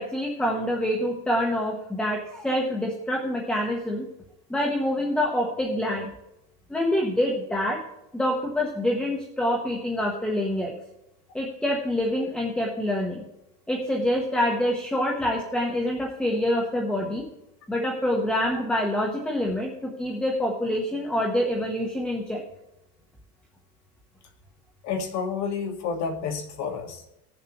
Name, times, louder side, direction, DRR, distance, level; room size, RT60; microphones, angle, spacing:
voice 1, 0.0-4.0 4.5-6.1 6.7-7.8 8.1-10.7 11.3-13.2 13.7-17.2 17.7-22.4, left 1 dB, 5° left, -1 dB, 0.9 m, -26 dB
voice 2, 24.8-27.0, left 5 dB, 50° left, 3 dB, 1.7 m, -30 dB
18.5 x 7.0 x 3.0 m, 0.89 s
cardioid pair, 175°, 35 cm